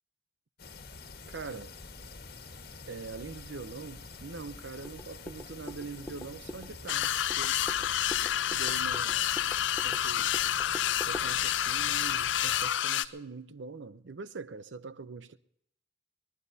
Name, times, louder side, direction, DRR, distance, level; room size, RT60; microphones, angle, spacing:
sound 1, 0.6-12.7, left 4 dB, 55° left, 1.5 m, -47 dB
voice 1, 1.3-1.8 2.9-7.6 8.5-9.3 9.8-10.3 11.0-15.4, right 4 dB, 75° right, 0.6 m, -43 dB
sound 2, 4.8-11.3, left 1 dB, 10° left, 0.8 m, -45 dB
sound 3, 6.9-13.1, left 11 dB, 75° left, 0.5 m, -29 dB
23.5 x 19.0 x 2.7 m
head